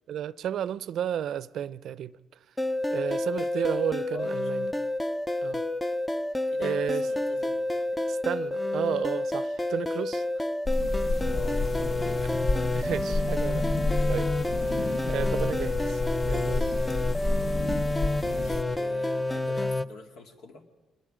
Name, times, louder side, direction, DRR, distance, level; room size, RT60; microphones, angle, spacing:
voice 1, 0.1-2.2 2.9-4.7 5.4-5.6 6.4-7.1 8.1-10.2 12.7-13.7 14.1-14.3 14.6-16.0 16.3-16.8, right 10 dB, 70° right, 0.5 m, -32 dB
sound 1, 2.6-19.9, left 2 dB, 15° left, 0.6 m, -29 dB
voice 2, 4.1-4.5 6.5-8.1 11.3-12.4 18.3-20.6, left 3 dB, 85° left, 2.1 m, -46 dB
sound 2, 10.6-18.6, left 2 dB, 60° left, 1.7 m, -30 dB
25.5 x 20.0 x 5.1 m
cardioid pair, 90°, 0 cm